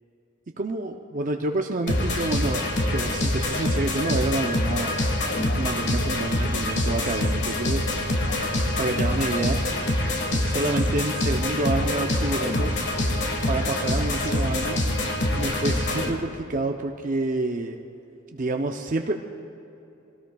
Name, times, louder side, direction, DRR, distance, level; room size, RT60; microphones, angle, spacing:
voice 1, 0.6-5.1 5.6-7.8 8.8-10.0 10.3-12.7 13.5-14.8 15.3-17.8 18.3-19.1, right 2 dB, 40° right, 3 dB, 0.6 m, -28 dB
sound 1, 1.9-16.1, left 1 dB, 55° left, 1.6 m, -25 dB
23.5 x 18.0 x 2.3 m, 2.8 s
head